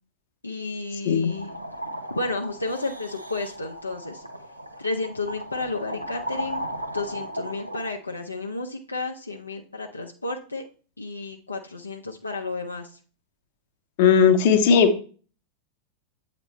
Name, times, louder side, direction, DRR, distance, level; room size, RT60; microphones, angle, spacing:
voice 1, 0.4-1.5 2.1-4.2 4.8-6.6 6.9-10.6 11.0-13.0, left 3 dB, 80° left, 2 dB, 0.6 m, -32 dB
sound 1, 1.3-7.9, equal, 90° right, 0.7 m, -36 dB
voice 2, 14.0-15.0, left 6 dB, 50° left, 7 dB, 0.8 m, -17 dB
7.9 x 2.9 x 4.3 m, 0.39 s
figure-of-eight pair, 90°, 0 cm